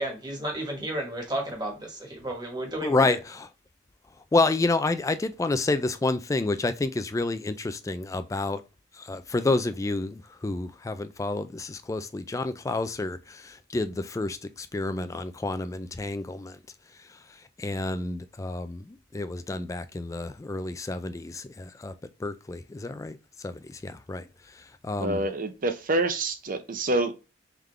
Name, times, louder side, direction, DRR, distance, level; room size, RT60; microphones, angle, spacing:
voice 1, 0.0-3.0, right 1 dB, 25° right, 1.4 m, -32 dB
voice 2, 2.8-3.5 4.3-8.6 8.9-16.6 17.0-21.9 22.2-23.2 23.4-25.3, left 2 dB, 15° left, 0.3 m, -29 dB
voice 3, 25.0-27.1, right 2 dB, 45° right, 0.6 m, -27 dB
3.7 x 3.5 x 3.2 m
head